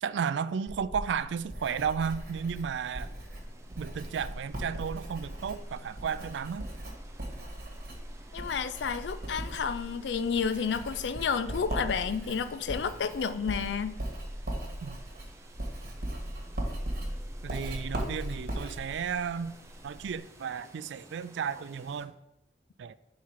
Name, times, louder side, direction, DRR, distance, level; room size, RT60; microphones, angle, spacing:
voice 1, 0.0-3.1 3.8-6.7 14.8-15.0 17.4-19.5 19.8-22.1 22.8-22.9, right 7 dB, 80° right, 0.3 m, -33 dB
Writing, 0.7-20.2, right 1 dB, 55° right, 1.6 m, -38 dB
sound 1, 2.1-22.1, right 2 dB, 15° right, 0.6 m, -54 dB
voice 2, 8.3-14.0, left 6 dB, 75° left, 0.4 m, -31 dB
5.9 x 4.2 x 4.7 m
head